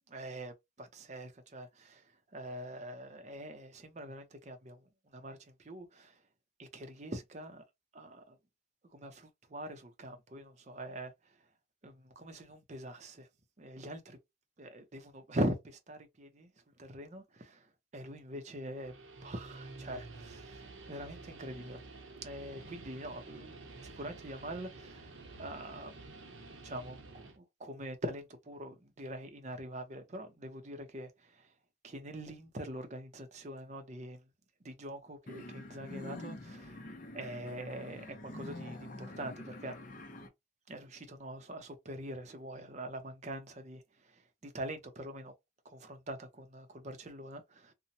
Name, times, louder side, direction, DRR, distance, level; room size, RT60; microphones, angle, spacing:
voice 1, 0.1-2.0 2.3-4.8 5.1-6.2 6.6-7.6 7.9-8.4 8.9-11.1 11.8-13.3 13.6-14.2 14.6-16.5 16.8-18.9 19.2-21.8 22.2-23.6 23.8-25.1 25.4-26.2 26.6-31.5 31.8-34.2 34.6-39.8 40.7-45.3 45.6-47.7, right 1 dB, 35° right, 0.5 m, -43 dB
Guitar, 18.7-27.4, right 3 dB, 85° right, 0.8 m, -50 dB
sound 1, 35.3-40.3, left 1 dB, 40° left, 0.5 m, -46 dB
2.8 x 2.1 x 2.6 m
head